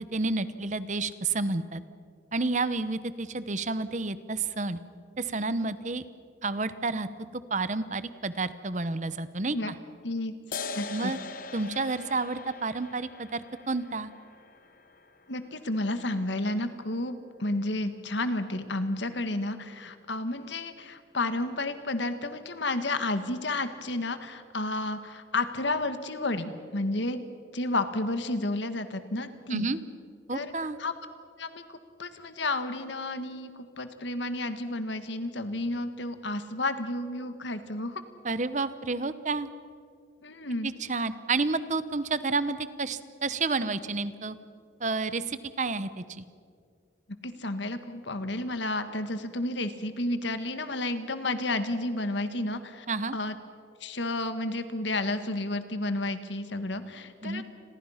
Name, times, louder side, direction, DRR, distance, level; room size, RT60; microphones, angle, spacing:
voice 1, 0.1-1.8 2.3-4.8 5.2-6.0 6.4-7.1 7.3-9.7 10.9-11.2 11.5-14.1 29.5-29.8 30.3-30.8 38.2-39.5 40.6-44.3 44.8-46.2 52.9-53.2 57.2-57.4, right 3 dB, 40° right, 14 dB, 0.9 m, -30 dB
sound 1, 10.5-17.5, left 4 dB, 50° left, 1.1 m, -43 dB
voice 2, 10.7-11.1 15.3-17.1 17.4-27.2 27.5-29.7 30.3-30.5 30.8-30.9 31.4-38.0 40.2-40.7 47.2-52.9 53.1-53.3 53.8-57.4, left 2 dB, 75° left, 10 dB, 1.6 m, -31 dB
29.5 x 22.0 x 5.8 m, 2.2 s
head